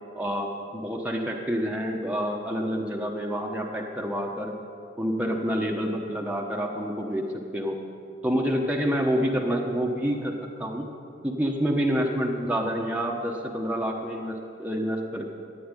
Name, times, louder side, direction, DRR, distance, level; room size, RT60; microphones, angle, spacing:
voice 1, 0.1-4.5 5.0-7.2 7.5-7.8 8.2-10.9 11.2-15.3, equal, 10° right, -1 dB, 1.1 m, -28 dB
14.5 x 9.5 x 9.8 m, 2.5 s
head